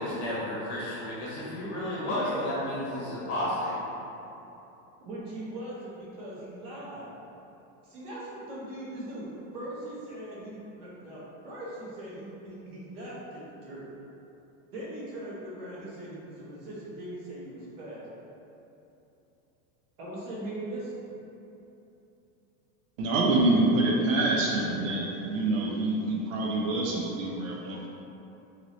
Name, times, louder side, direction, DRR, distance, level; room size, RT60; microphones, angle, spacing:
voice 1, 0.0-3.9, left 1 dB, 55° left, -7 dB, 0.8 m, -32 dB
voice 2, 2.0-2.5 5.0-7.1 7.8-13.9 14.7-18.0 20.0-21.1, right 1 dB, 45° right, -7 dB, 0.9 m, -40 dB
voice 3, 23.0-27.9, right 2 dB, 75° right, -3 dB, 0.5 m, -26 dB
2.8 x 2.6 x 2.9 m, 2.9 s
supercardioid pair, 180°, 41 cm